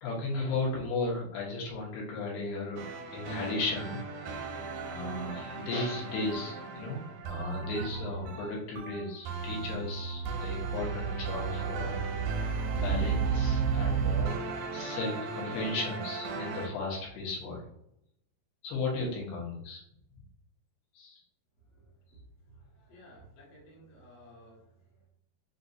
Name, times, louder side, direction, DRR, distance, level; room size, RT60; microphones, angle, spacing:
voice 1, 0.0-2.8 3.1-4.4 4.9-12.0 12.7-17.7 18.6-19.8 20.9-21.2, left 3 dB, 75° left, -3 dB, 3.0 m, -35 dB
sound 1, 2.8-16.7, right 5 dB, 80° right, 2.1 m, -34 dB
voice 2, 22.5-25.1, equal, 55° left, -5 dB, 1.9 m, -55 dB
6.6 x 2.4 x 2.6 m, 0.74 s
omnidirectional pair, 4.8 m